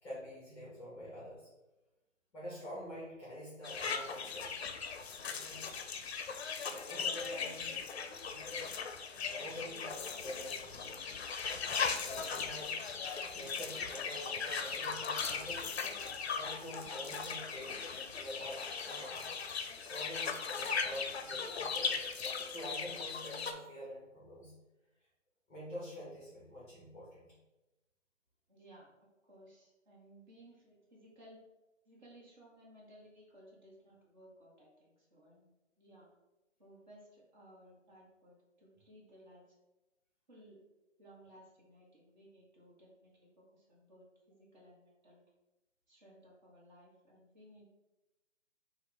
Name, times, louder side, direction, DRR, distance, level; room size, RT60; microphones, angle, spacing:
voice 1, 0.0-1.5 2.3-4.5 5.3-5.7 6.6-7.7 8.3-8.6 9.2-11.0 11.4-12.8 13.3-15.8 16.3-19.3 19.9-22.1 22.5-24.5 25.5-27.3, equal, 5° left, -8 dB, 0.7 m, -47 dB
sound 1, 3.6-23.5, left 5 dB, 60° left, 0.5 m, -38 dB
voice 2, 28.5-28.9 29.2-31.4 31.8-35.5 35.8-36.1 36.6-39.4 40.3-40.6 41.0-45.2 45.9-47.7, right 1 dB, 35° right, -4 dB, 1.4 m, -59 dB
5.0 x 2.5 x 3.4 m, 1.0 s
hypercardioid pair, 160°, 38 cm